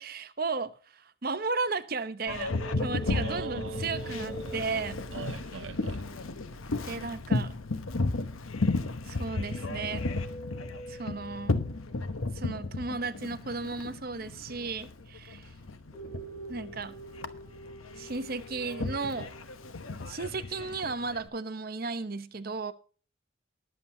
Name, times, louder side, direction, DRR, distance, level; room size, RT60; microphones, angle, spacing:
voice 1, 0.0-5.0 6.8-7.5 9.1-10.0 10.9-11.6 12.3-15.5 16.5-17.0 18.0-19.3 20.1-22.7, right 4 dB, 45° right, 0.9 m, -35 dB
Boat Water vehicle, 2.3-21.3, left 2 dB, 85° left, 1.1 m, -34 dB
sound 1, 2.5-5.7 9.2-11.8 15.9-19.7, right 1 dB, 15° left, 4.7 m, -44 dB
voice 2, 3.0-4.6 5.1-6.0, right 5 dB, 65° right, 0.6 m, -42 dB
20.0 x 7.9 x 2.8 m
head